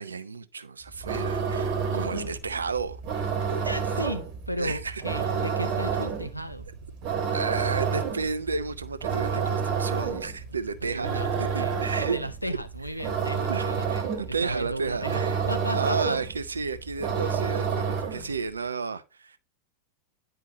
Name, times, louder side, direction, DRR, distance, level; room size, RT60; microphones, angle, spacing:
voice 1, 0.0-3.0 4.6-5.3 7.3-12.2 13.5-15.4 15.7-19.4, right 5 dB, 75° right, 0.6 m, -32 dB
sound 1, 0.9-18.4, right 6 dB, 40° right, 1.5 m, -29 dB
voice 2, 1.9-2.3 3.4-6.7 10.8-14.0 14.4-16.2, equal, 90° left, 0.8 m, -35 dB
9.9 x 4.6 x 2.9 m
figure-of-eight pair, 90°, 0 cm